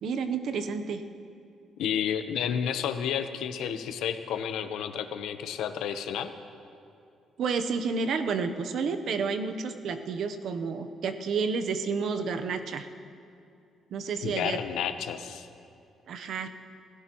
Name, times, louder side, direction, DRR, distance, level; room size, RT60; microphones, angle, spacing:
voice 1, 0.0-1.0 7.4-12.9 13.9-14.6 16.1-16.5, right 5 dB, 55° right, 7 dB, 0.9 m, -30 dB
voice 2, 1.8-6.3 14.2-15.5, left 8 dB, 85° left, 9 dB, 0.9 m, -31 dB
28.0 x 16.0 x 3.1 m, 2.5 s
cardioid pair, 170°, 0 cm